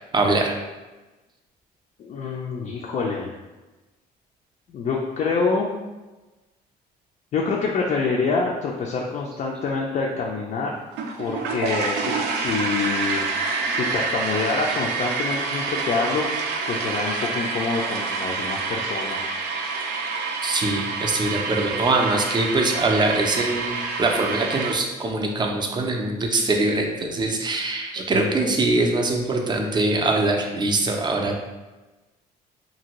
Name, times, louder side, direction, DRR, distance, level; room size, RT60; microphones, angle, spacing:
voice 1, 0.1-0.5 20.4-31.4, right 2 dB, 25° right, 2 dB, 0.4 m, -23 dB
voice 2, 2.0-3.3 4.7-5.7 7.3-10.7 11.2-13.3 13.7-16.3 16.7-19.3 28.1-28.3, left 4 dB, 45° left, -2 dB, 0.4 m, -26 dB
sound 1, 10.9-24.7, right 4 dB, 85° right, 0.4 m, -27 dB
2.8 x 2.6 x 2.9 m, 1.2 s
cardioid pair, 110°, 17 cm